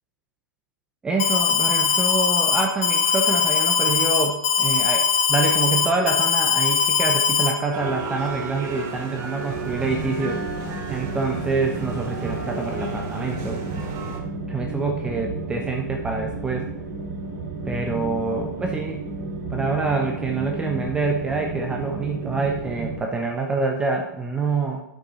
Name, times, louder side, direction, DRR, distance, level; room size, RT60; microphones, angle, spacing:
voice 1, 1.0-10.4 10.9-13.6 14.5-16.7 17.7-19.0 19.5-24.8, right 3 dB, 10° right, 1 dB, 0.6 m, -26 dB
Alarm, 1.2-7.5, left 7 dB, 25° left, 1.4 m, -20 dB
sound 1, 7.7-14.2, right 4 dB, 25° right, 1.1 m, -34 dB
sound 2, 9.5-23.0, right 3 dB, 50° right, 2.2 m, -32 dB
8.2 x 6.1 x 4.0 m, 0.87 s
hypercardioid pair, 145°, 11 cm